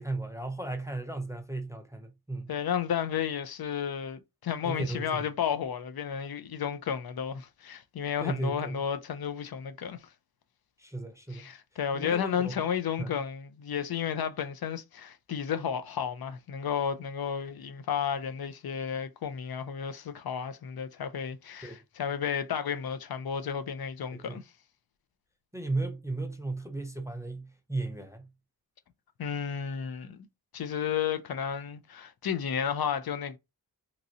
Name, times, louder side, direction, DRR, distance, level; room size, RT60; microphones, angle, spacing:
voice 1, 0.0-2.5 4.6-5.2 8.2-8.8 10.8-11.5 11.9-12.6 13.0-13.2 21.6-21.8 24.1-24.4 25.5-28.3, right 2 dB, 10° right, 0.4 m, -35 dB
voice 2, 2.5-10.1 11.3-24.4 29.2-30.3 30.5-33.4, left 8 dB, 70° left, 0.5 m, -32 dB
2.9 x 2.6 x 2.7 m
wide cardioid pair, 110°, 39 cm